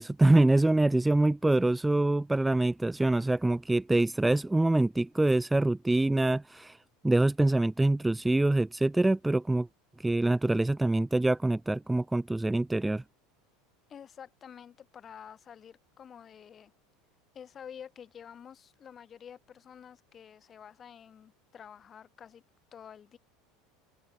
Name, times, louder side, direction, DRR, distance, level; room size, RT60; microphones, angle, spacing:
voice 1, 0.0-6.8 7.0-9.7 10.0-13.0, right 2 dB, 10° right, 0.5 m, -25 dB
voice 2, 13.9-16.7 17.3-22.4 22.7-23.2, left 8 dB, 35° left, 5.5 m, -49 dB
hypercardioid pair, 95°, 0 cm